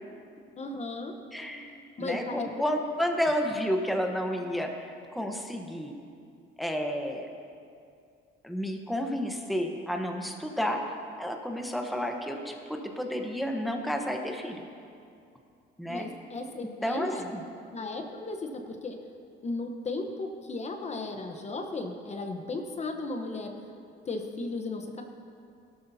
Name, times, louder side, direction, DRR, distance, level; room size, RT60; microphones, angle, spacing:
voice 1, 0.6-1.1 2.0-2.5 15.9-17.3 17.7-19.0 19.4-23.5 24.0-25.0, left 3 dB, 35° left, 4 dB, 1.0 m, -35 dB
voice 2, 1.3-4.7 5.1-5.9 6.6-7.3 8.4-10.9 11.2-14.7 15.8-16.1 16.8-17.4, equal, ahead, 2 dB, 1.1 m, -31 dB
17.0 x 12.5 x 2.8 m, 2.4 s
cardioid pair, 100°, 20 cm